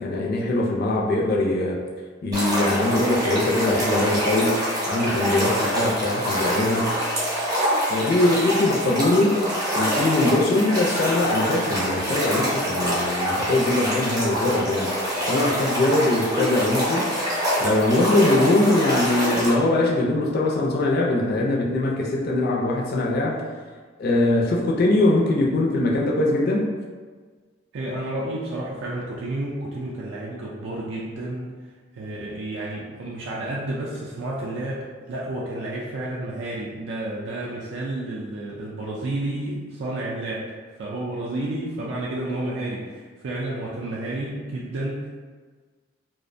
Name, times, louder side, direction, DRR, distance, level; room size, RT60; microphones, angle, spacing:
voice 1, 0.0-1.8 2.2-7.0 7.9-9.5 9.8-14.9 15.3-17.1 17.6-23.5 24.0-26.7, left 2 dB, 50° left, -2 dB, 0.4 m, -22 dB
sound 1, 2.3-19.5, equal, 20° right, 0.6 m, -25 dB
voice 2, 27.7-31.5 31.9-40.5 40.8-45.1, right 1 dB, 65° right, -5 dB, 0.4 m, -31 dB
2.4 x 2.1 x 2.5 m, 1.5 s
head